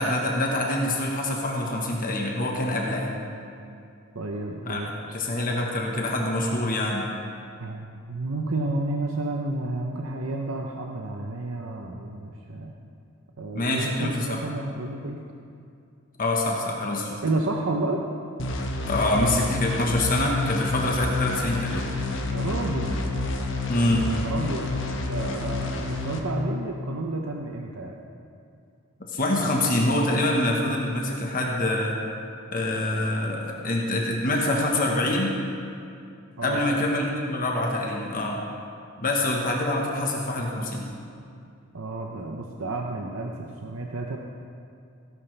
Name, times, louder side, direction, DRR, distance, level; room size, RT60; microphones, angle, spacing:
voice 1, 0.0-3.1 4.7-7.1 13.5-14.4 16.2-17.2 18.8-21.9 23.7-24.1 29.1-32.0 32.5-35.3 36.4-38.4 39.0-40.8, left 1 dB, 45° left, -1 dB, 1.3 m, -25 dB
voice 2, 4.1-4.9 7.6-12.7 13.4-15.2 17.2-18.0 19.5-19.6 22.3-23.1 23.8-28.0 36.4-36.8 41.7-44.2, right 2 dB, 70° right, 1 dB, 0.8 m, -31 dB
sound 1, 18.4-26.2, left 2 dB, 65° left, 1.3 m, -29 dB
17.0 x 11.0 x 3.4 m, 2.5 s
head